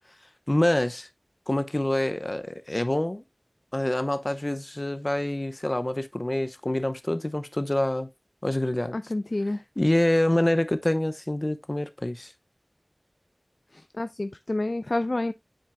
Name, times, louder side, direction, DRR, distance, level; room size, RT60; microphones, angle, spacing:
voice 1, 0.5-1.1 1.5-3.2 3.7-8.1 8.4-8.9 9.8-12.3, left 1 dB, 40° left, 0.8 m, -26 dB
voice 2, 8.9-9.6 13.7-15.3, left 2 dB, 65° left, 0.3 m, -29 dB
10.0 x 4.5 x 2.2 m
wide cardioid pair, 40°, 0 cm